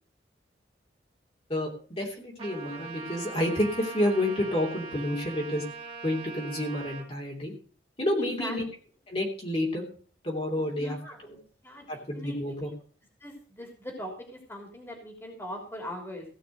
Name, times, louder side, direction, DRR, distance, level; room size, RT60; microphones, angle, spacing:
voice 1, 1.5-5.6 6.0-7.5 8.0-8.7 9.1-9.9 10.2-11.0 11.2-11.4 11.9-12.7, left 1 dB, 35° left, -1 dB, 3.1 m, -29 dB
Trumpet, 2.4-7.1, right 5 dB, 30° right, 2.8 m, -41 dB
voice 2, 8.2-8.6 10.6-12.6 13.2-16.2, equal, 15° left, 1 dB, 3.3 m, -41 dB
17.0 x 6.0 x 6.4 m, 0.42 s
head